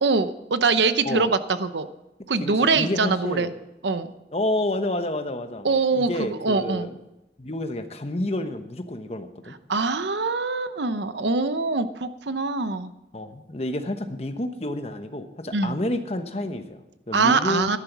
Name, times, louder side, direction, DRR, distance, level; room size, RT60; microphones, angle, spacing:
voice 1, 0.0-1.9 2.3-3.5 3.8-4.1 5.6-6.1 6.4-6.9 9.7-12.9 15.5-15.8 17.1-17.8, right 4 dB, 80° right, 12 dB, 0.8 m, -23 dB
voice 2, 2.4-3.5 4.3-5.7 5.9-6.9 7.4-9.6 13.1-17.7, left 1 dB, 35° left, 7 dB, 1.1 m, -29 dB
14.0 x 11.5 x 6.0 m, 0.94 s
head